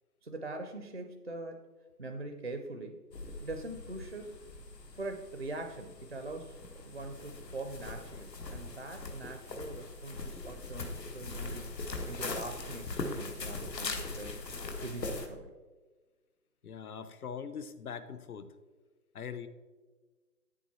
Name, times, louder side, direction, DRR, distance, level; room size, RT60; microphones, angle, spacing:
voice 1, 0.2-1.6 2.0-3.0 3.4-4.4 4.9-11.8 12.1-14.5 14.8-15.5, right 2 dB, 45° right, 5 dB, 0.4 m, -42 dB
sound 1, 3.1-15.3, left 3 dB, 80° left, 1.5 m, -41 dB
voice 2, 16.6-18.5 19.1-19.5, left 7 dB, 60° left, 12 dB, 0.8 m, -42 dB
8.6 x 7.3 x 4.2 m, 1.3 s
hypercardioid pair, 165°, 48 cm